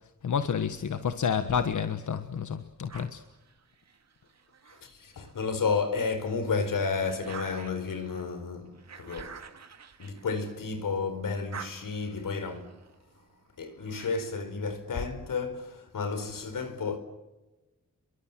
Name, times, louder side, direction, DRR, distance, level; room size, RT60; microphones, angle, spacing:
voice 1, 0.2-3.2, left 7 dB, 65° left, 1.4 m, -29 dB
sound 1, 2.9-5.6 6.1-10.9 11.2-14.5, right 6 dB, 55° right, 2.2 m, -49 dB
voice 2, 4.8-9.4 10.0-12.7 13.6-17.0, left 4 dB, 85° left, 4.7 m, -32 dB
30.0 x 23.0 x 7.5 m
wide cardioid pair, 160°, 32 cm